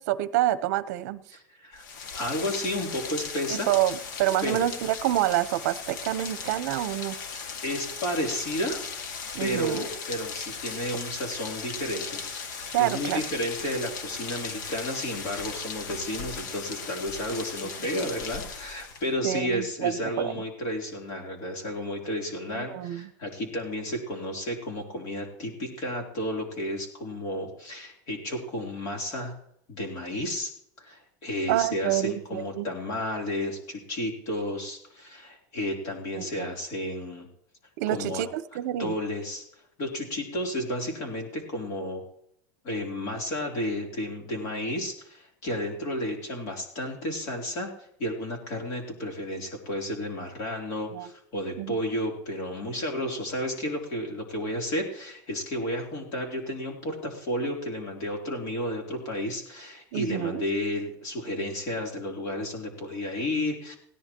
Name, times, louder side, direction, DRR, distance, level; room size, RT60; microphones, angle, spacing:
voice 1, 0.0-1.2 3.5-7.2 9.3-9.8 12.7-13.2 19.2-20.4 22.5-23.1 31.5-32.7 36.2-36.5 37.8-38.9 50.9-51.1 51.6-51.8 59.9-60.4, right 14 dB, 60° right, 14 dB, 0.9 m, -27 dB
voice 2, 1.3-1.8 2.1-3.7 4.4-4.7 7.6-8.9 9.4-29.3 29.7-30.5 30.8-37.3 37.9-38.2 38.8-39.4 39.8-42.0 42.6-47.7 48.0-63.8, left 1 dB, 40° left, 1 dB, 3.5 m, -32 dB
Rain, 1.7-19.1, left 5 dB, 85° left, 2.1 m, -37 dB
19.5 x 17.0 x 3.0 m, 0.73 s
supercardioid pair, 180°, 10 cm